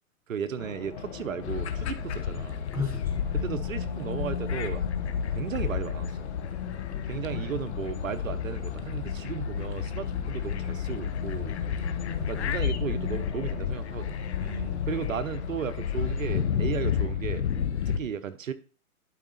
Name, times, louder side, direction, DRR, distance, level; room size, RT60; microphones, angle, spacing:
voice 1, 0.3-2.6 3.3-4.8 5.3-6.2 7.1-11.6 12.3-14.2 14.9-17.4 17.9-18.5, right 8 dB, 65° right, 13 dB, 0.9 m, -35 dB
Race car auto racing, 0.6-17.2, left 7 dB, 30° left, 1.5 m, -40 dB
sound 1, 1.4-18.0, left 8 dB, 50° left, 1.1 m, -31 dB
voice 2, 2.7-3.6 7.3-7.5 14.4-15.0, left 3 dB, 5° right, 3 dB, 1.0 m, -36 dB
11.5 x 5.0 x 4.1 m, 0.37 s
hypercardioid pair, 150°, 43 cm